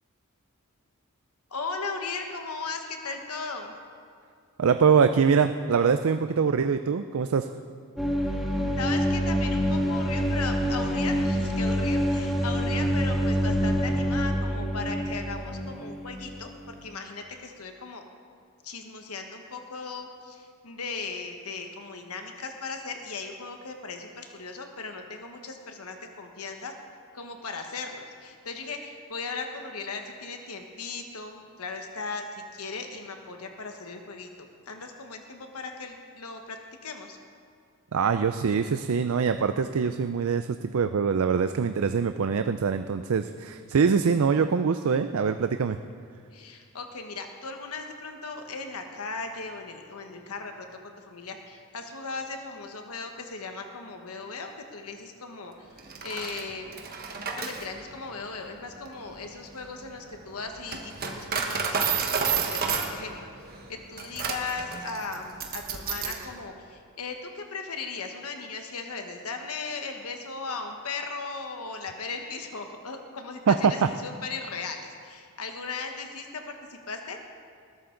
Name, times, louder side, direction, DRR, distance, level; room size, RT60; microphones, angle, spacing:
voice 1, 1.5-3.8 8.8-18.0 18.6-26.7 27.1-37.2 46.3-50.7 51.1-55.7 56.0-56.8 57.4-77.2, left 4 dB, 80° left, 4 dB, 1.2 m, -37 dB
voice 2, 4.6-7.5 37.9-45.8 73.5-73.6 73.8-73.9, right 6 dB, 70° right, 9 dB, 0.4 m, -24 dB
sound 1, 8.0-16.8, equal, ahead, 1.8 m, -26 dB
Coin (dropping), 55.8-66.3, right 6 dB, 45° right, 1.3 m, -32 dB
20.5 x 12.5 x 3.9 m, 2.3 s
head